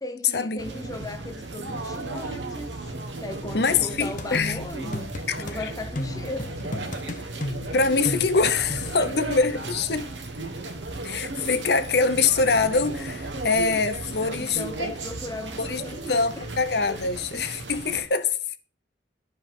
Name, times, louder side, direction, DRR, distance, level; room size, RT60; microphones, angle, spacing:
voice 1, 0.0-2.9 3.2-5.1 5.4-6.7 7.0-7.2 9.0-9.1 14.4-16.5 16.9-17.1, left 2 dB, 20° left, 0.7 m, -37 dB
sound 1, 0.6-18.0, right 2 dB, 85° right, 1.4 m, -35 dB
voice 2, 3.5-4.6 5.3-5.5 7.7-10.1 11.0-14.6 15.6-15.8 16.1-18.4, left 4 dB, 60° left, 0.8 m, -24 dB
sound 2, 4.2-5.6 6.0-9.1, left 1 dB, 45° left, 1.1 m, -34 dB
12.5 x 5.4 x 3.7 m
head